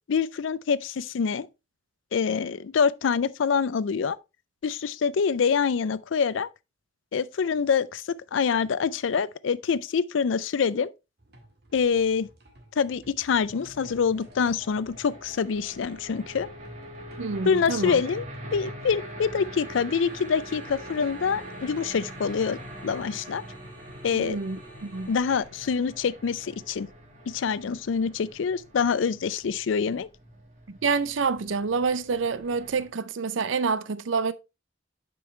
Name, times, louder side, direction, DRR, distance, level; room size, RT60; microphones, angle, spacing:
voice 1, 0.1-1.5 2.1-4.2 4.6-6.5 7.1-10.9 11.7-12.3 12.8-16.5 17.5-18.3 18.5-22.6 22.8-23.4 24.0-24.4 25.1-26.9 27.3-30.1, left 6 dB, 85° left, 0.4 m, -25 dB
sound 1, 11.2-22.8, right 1 dB, 55° right, 1.9 m, -54 dB
sound 2, 13.5-32.9, right 1 dB, 40° right, 1.7 m, -43 dB
voice 2, 17.2-18.0 24.1-25.1 30.7-34.3, right 4 dB, 85° right, 0.5 m, -27 dB
sound 3, 19.9-25.4, right 1 dB, 10° left, 1.5 m, -55 dB
7.8 x 5.4 x 3.1 m
head